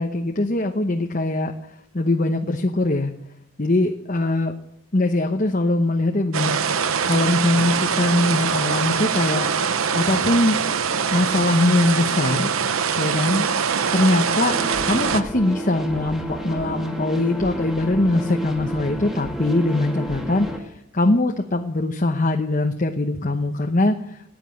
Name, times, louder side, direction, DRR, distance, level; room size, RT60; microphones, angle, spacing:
voice 1, 0.0-1.5 1.9-3.1 3.6-4.5 4.9-6.6 7.0-9.5 9.9-10.6 11.1-12.5 13.0-13.5 13.9-14.6 14.8-24.0, left 2 dB, 40° left, 4 dB, 0.9 m, -21 dB
sound 1, 6.3-15.2, right 6 dB, 80° right, 0.8 m, -23 dB
sound 2, 14.5-20.6, right 1 dB, ahead, 1.8 m, -31 dB
16.5 x 9.9 x 8.4 m, 0.77 s
head